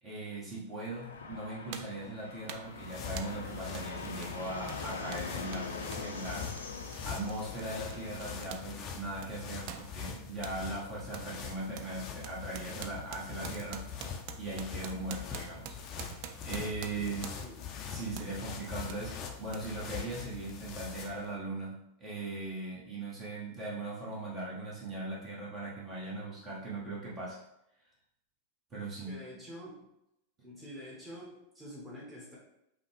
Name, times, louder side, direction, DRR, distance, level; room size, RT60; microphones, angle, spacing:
voice 1, 0.0-5.7 6.0-6.5 7.0-13.9 14.4-17.2 17.9-27.4 28.7-29.2, right 2 dB, 30° right, -6 dB, 1.3 m, -39 dB
Fixed-wing aircraft airplane, 0.9-8.5, left 4 dB, 75° left, 0.7 m, -43 dB
sound 1, 0.9-1.0 1.7-2.0 2.5-2.8 3.2-3.4 3.7-3.9 4.2-8.7 9.0-10.6 11.1-11.3 11.8-17.6 18.2-18.4 18.9-19.0 19.5-19.6, right 9 dB, 45° right, 0.4 m, -46 dB
sound 2, 2.5-21.3, left 7 dB, 35° left, 0.6 m, -43 dB
voice 2, 17.0-17.6 29.1-29.9 30.4-32.4, equal, 10° right, -6 dB, 1.4 m, -47 dB
5.6 x 2.4 x 3.4 m, 0.83 s
figure-of-eight pair, 90°, 0 cm